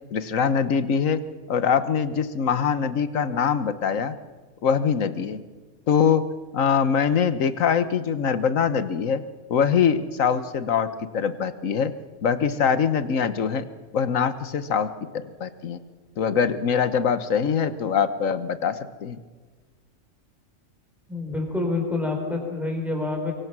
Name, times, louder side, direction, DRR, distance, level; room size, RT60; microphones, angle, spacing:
voice 1, 0.1-1.2 1.5-4.1 4.6-5.4 5.9-6.2 6.5-9.2 9.5-10.9 11.1-11.9 12.2-13.7 13.9-14.9 15.4-15.8 16.2-19.2, left 7 dB, 80° left, 12 dB, 1.5 m, -23 dB
voice 2, 21.1-23.3, left 3 dB, ahead, 1 dB, 5.1 m, -27 dB
24.5 x 23.5 x 6.1 m, 1.4 s
omnidirectional pair, 1.4 m